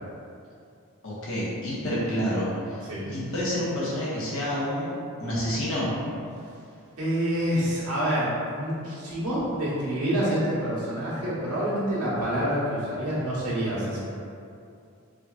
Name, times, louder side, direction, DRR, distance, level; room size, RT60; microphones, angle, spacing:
voice 1, 1.0-5.9, equal, 65° left, -8 dB, 1.2 m, -29 dB
voice 2, 7.0-14.0, equal, 80° right, -9 dB, 1.3 m, -27 dB
4.9 x 2.9 x 2.4 m, 2.5 s
head